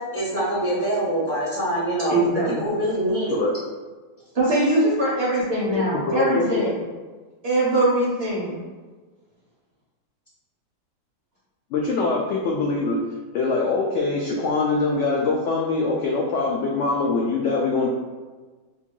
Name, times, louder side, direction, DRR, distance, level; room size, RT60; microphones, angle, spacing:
voice 1, 0.0-2.2 2.6-3.5, right 1 dB, 15° right, -10 dB, 0.5 m, -24 dB
voice 2, 2.1-2.7 4.3-6.7 7.4-8.6, right 1 dB, 45° right, -7 dB, 1.0 m, -22 dB
voice 3, 5.7-6.7 11.7-13.0 13.3-17.9, left 3 dB, 80° left, -2 dB, 0.6 m, -23 dB
2.9 x 2.7 x 3.7 m, 1.3 s
omnidirectional pair, 1.8 m